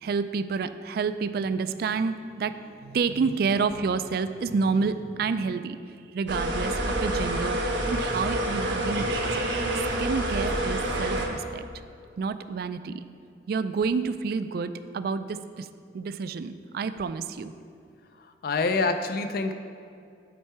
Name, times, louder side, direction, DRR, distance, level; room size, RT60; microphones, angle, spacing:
voice 1, 0.0-5.8 6.1-7.6 7.9-9.3 10.0-11.6 12.2-13.0 13.5-15.7 15.9-17.5, right 5 dB, 55° right, 12 dB, 0.3 m, -29 dB
sound 1, 6.3-11.3, right 1 dB, 85° right, 1.1 m, -27 dB
voice 2, 18.4-19.5, left 3 dB, 55° left, 8 dB, 0.4 m, -26 dB
10.0 x 4.5 x 4.6 m, 2.4 s
head